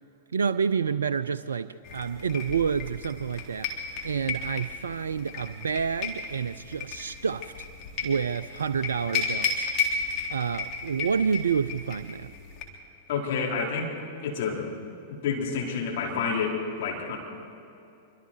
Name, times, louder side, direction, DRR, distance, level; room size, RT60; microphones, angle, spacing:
voice 1, 0.3-3.7 4.0-7.5 8.0-9.7 10.3-12.3, right 6 dB, 75° right, 12 dB, 0.4 m, -28 dB
sound 1, 1.8-12.6, left 5 dB, 40° left, 3.6 m, -34 dB
voice 2, 13.1-13.9 14.2-14.7 15.1-17.2, left 5 dB, 55° left, -2 dB, 4.6 m, -29 dB
26.0 x 24.5 x 4.7 m, 2.7 s
figure-of-eight pair, 100°, 0 cm